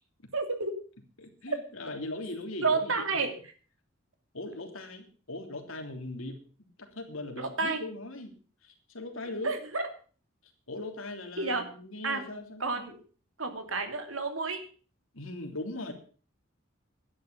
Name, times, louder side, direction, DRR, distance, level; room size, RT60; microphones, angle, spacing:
voice 1, 0.3-0.7 2.6-3.3 7.4-7.8 9.4-9.8 11.4-11.6 12.0-12.2 12.6-13.0 13.4-14.6, right 3 dB, 85° right, 7 dB, 2.7 m, -30 dB
voice 2, 1.2-3.2 4.3-8.3 8.6-9.5 10.7-13.0 15.1-15.9, left 2 dB, 80° left, 4 dB, 3.2 m, -40 dB
12.0 x 10.5 x 6.8 m, 0.40 s
head